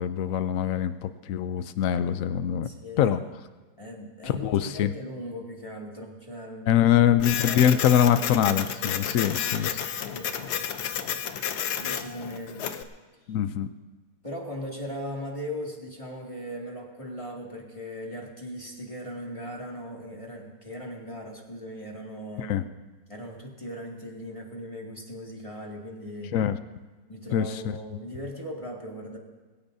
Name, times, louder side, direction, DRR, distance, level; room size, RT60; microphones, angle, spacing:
voice 1, 0.0-2.7 3.0-3.2 4.2-4.9 6.7-9.8 13.3-13.7 22.4-22.6 26.3-26.6 27.3-27.8, left 10 dB, 85° left, 11 dB, 0.7 m, -23 dB
voice 2, 2.6-3.2 3.8-6.8 7.3-7.7 9.3-9.6 10.1-11.1 11.8-12.8 14.2-22.6 23.1-26.4 27.1-29.2, equal, 15° left, -2 dB, 2.1 m, -39 dB
Printer, 7.2-12.8, left 9 dB, 65° left, 1.2 m, -31 dB
21.0 x 17.0 x 2.7 m, 1.4 s
omnidirectional pair, 2.1 m